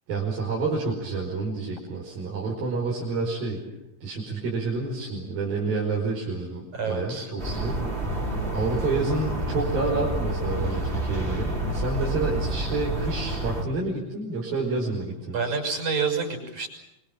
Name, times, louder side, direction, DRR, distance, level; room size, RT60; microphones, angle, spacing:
voice 1, 0.1-3.6 4.0-8.2 8.5-15.5, right 3 dB, 65° right, -4 dB, 7.0 m, -29 dB
voice 2, 6.7-7.3 15.3-16.7, right 5 dB, 50° right, 5 dB, 7.7 m, -28 dB
sound 1, 7.4-13.6, right 1 dB, 15° right, 4.1 m, -29 dB
27.0 x 25.5 x 7.5 m, 0.85 s
omnidirectional pair, 4.4 m